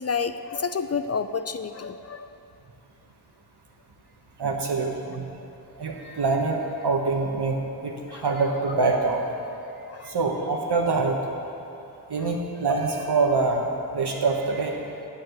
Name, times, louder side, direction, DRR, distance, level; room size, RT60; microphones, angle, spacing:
voice 1, 0.0-2.3 5.4-5.5 8.1-8.2 9.9-10.1 12.2-12.3, left 5 dB, 40° left, 10 dB, 0.4 m, -30 dB
voice 2, 4.4-5.3 5.8-7.6 7.8-9.2 10.0-11.2 12.1-14.8, right 3 dB, 65° right, 1 dB, 1.4 m, -25 dB
8.3 x 6.5 x 8.0 m, 3.0 s
cardioid pair, 45°, 42 cm